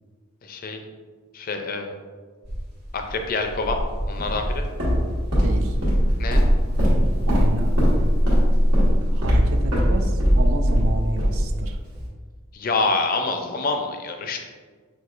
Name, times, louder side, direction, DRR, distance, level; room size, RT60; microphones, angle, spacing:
voice 1, 0.4-0.8 1.3-2.0 2.9-3.8 4.1-4.6 6.2-6.4 12.5-14.4, left 3 dB, 40° left, 5 dB, 0.4 m, -26 dB
sound 1, 2.4-11.7, equal, 45° right, 1.1 m, -32 dB
Walk footsteps, 4.2-12.1, equal, 80° right, 1.4 m, -20 dB
voice 2, 5.4-5.8 7.3-7.8 9.1-11.8, right 2 dB, 65° right, 5 dB, 0.4 m, -30 dB
5.9 x 2.7 x 2.4 m, 1.5 s
head